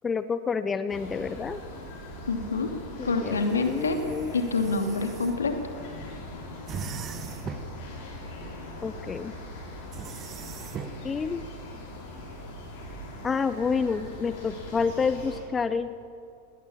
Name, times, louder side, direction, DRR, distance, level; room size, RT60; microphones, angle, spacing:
voice 1, 0.0-1.6 3.0-4.3 8.8-9.3 11.0-11.4 13.2-15.9, left 5 dB, 15° left, 13 dB, 0.7 m, -29 dB
sound 1, 0.9-15.4, left 1 dB, 45° left, 6.6 m, -41 dB
voice 2, 2.3-2.7 3.0-4.0 4.3-5.5, left 4 dB, 70° left, 6 dB, 2.4 m, -26 dB
sound 2, 3.3-5.4 6.7-7.8 9.9-11.0, right 6 dB, 25° right, 1.4 m, -40 dB
19.5 x 18.5 x 8.7 m, 2.5 s
figure-of-eight pair, 90°, 0 cm